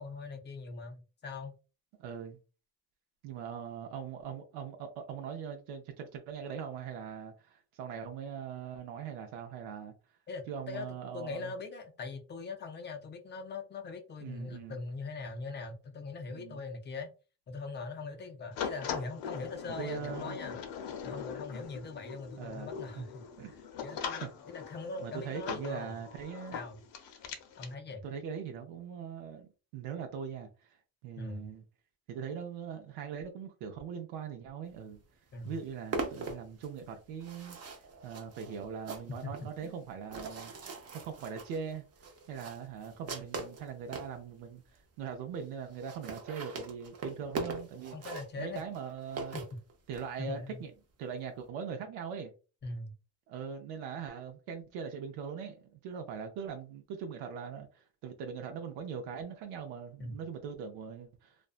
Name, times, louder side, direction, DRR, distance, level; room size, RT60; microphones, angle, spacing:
voice 1, 0.0-1.5 10.3-17.1 17.5-20.6 21.0-26.0 26.5-26.8 27.6-28.0 31.2-31.5 35.3-35.6 39.2-39.3 39.6-39.7 47.9-48.6 49.3-49.5 50.2-50.7 52.6-52.9 60.0-60.2, left 3 dB, 25° left, 0.4 m, -41 dB
voice 2, 2.0-2.4 3.2-9.9 10.5-11.5 14.2-14.8 16.3-16.6 19.8-20.4 22.4-23.0 23.4-23.5 24.2-24.3 25.0-26.6 28.0-30.7 31.0-31.6 32.1-35.0 35.4-37.6 38.0-40.5 40.9-41.8 42.3-48.0 48.4-49.4 49.9-50.7 51.0-52.3 53.3-61.4, right 7 dB, 85° right, 0.6 m, -41 dB
sound 1, 18.5-27.7, left 7 dB, 60° left, 0.6 m, -41 dB
sound 2, 35.0-35.1 35.3-44.2 44.8-44.9 45.1-45.2 45.4-45.5 45.7-50.1, right 3 dB, 35° right, 0.5 m, -41 dB
2.5 x 2.1 x 2.4 m
cardioid pair, 120°, 48 cm